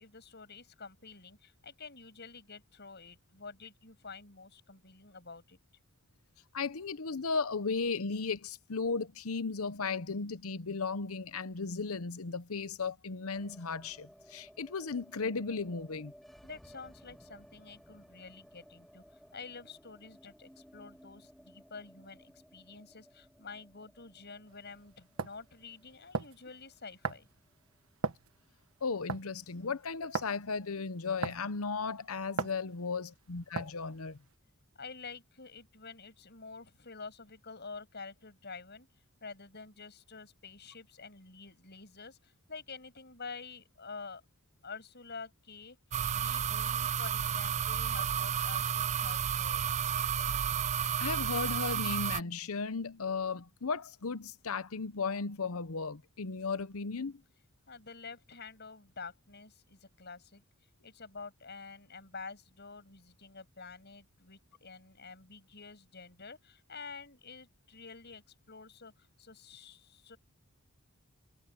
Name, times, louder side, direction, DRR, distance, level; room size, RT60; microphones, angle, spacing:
voice 1, 0.0-5.6 16.4-19.0 19.3-27.3 34.8-38.9 39.2-44.2 44.6-45.8 46.1-49.6 57.7-60.4 60.8-70.2, left 4 dB, 50° left, 7.4 m, -48 dB
voice 2, 6.5-16.1 28.8-34.2 50.2-50.3 51.0-57.2, left 4 dB, 85° left, 0.9 m, -35 dB
sound 1, 13.3-29.4 29.7-29.8 30.1-30.8, equal, ahead, 2.9 m, -59 dB
sound 2, 24.5-24.6 25.2-25.4 26.1-26.4 27.0-27.3 28.0-28.3 29.1-29.4 30.1-30.3 31.2-31.5 32.4-32.6 33.6-33.8, right 4 dB, 75° right, 1.3 m, -35 dB
sound 3, 45.9-52.2, right 8 dB, 30° right, 0.4 m, -32 dB
head